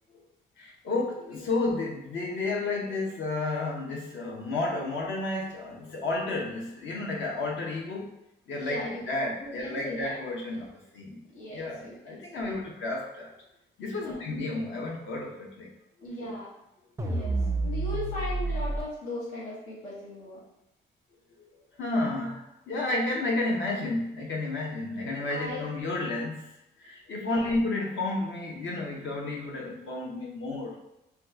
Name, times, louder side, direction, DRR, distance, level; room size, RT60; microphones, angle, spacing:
voice 1, 0.6-8.1 8.5-11.2 11.5-13.3 13.8-15.7 16.2-16.4 21.8-22.4 22.7-26.4 26.8-30.8, left 2 dB, 65° left, -1 dB, 0.9 m, -31 dB
voice 2, 8.6-9.0 9.4-10.2 10.4-10.6 11.3-12.4 13.9-14.2 16.0-16.5 17.0-17.3 17.6-20.4 22.2-22.3 25.3-25.6 27.2-27.5, left 1 dB, 85° left, -7 dB, 1.1 m, -38 dB
sound 1, 17.0-18.8, right 2 dB, 15° right, 0.4 m, -29 dB
2.8 x 2.3 x 3.6 m, 0.91 s
cardioid pair, 90°, 21 cm